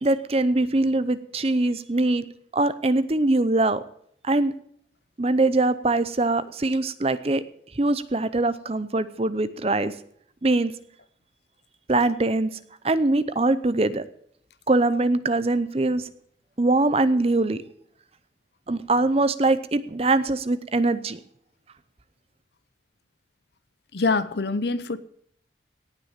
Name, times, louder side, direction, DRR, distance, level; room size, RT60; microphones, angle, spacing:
voice 1, 0.0-2.3 2.5-3.8 4.2-4.5 5.2-7.4 7.8-9.9 10.4-10.7 11.9-12.5 12.8-14.0 14.7-16.0 16.6-17.6 18.7-21.2, right 2 dB, 35° right, 0.7 m, -22 dB
voice 2, 23.9-25.0, left 3 dB, 65° left, 0.8 m, -24 dB
18.0 x 6.2 x 8.9 m
head